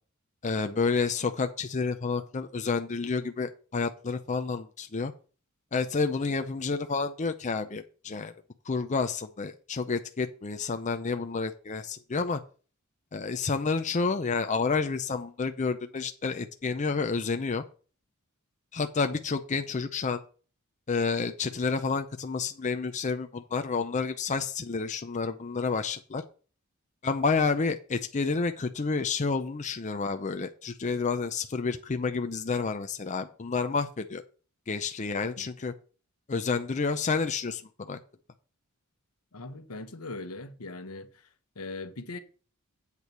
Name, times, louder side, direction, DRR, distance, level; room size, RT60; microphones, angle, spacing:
voice 1, 0.4-5.1 5.7-8.3 8.7-12.4 13.1-17.6 18.7-20.2 20.9-26.2 27.0-34.2 34.7-35.7 36.3-38.0, left 4 dB, 35° left, 0.5 m, -29 dB
voice 2, 39.3-41.1 41.6-42.2, left 2 dB, 80° left, 1.1 m, -40 dB
8.3 x 4.6 x 6.7 m
head